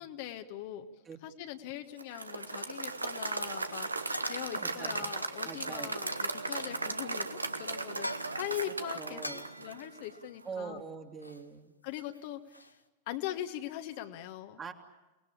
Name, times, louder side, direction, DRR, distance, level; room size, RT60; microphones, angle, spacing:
voice 1, 0.0-0.9 1.2-3.9 4.2-8.1 8.4-10.8 11.8-12.7 13.1-14.6, left 12 dB, 50° left, 7 dB, 1.5 m, -41 dB
Applause / Crowd, 2.0-10.2, right 3 dB, 80° right, 1.3 m, -37 dB
sound 1, 3.1-3.3 4.1-4.8 5.9-6.7 7.9-8.5 9.2-10.7 11.2-11.5 11.7-12.8, left 1 dB, 85° left, 1.2 m, -44 dB
voice 2, 4.6-5.1 5.4-6.0 8.9-9.7 10.4-11.8 14.6-14.7, right 5 dB, 20° right, 4 dB, 2.7 m, -43 dB
29.5 x 20.0 x 8.6 m, 1.1 s
figure-of-eight pair, 90°, 0 cm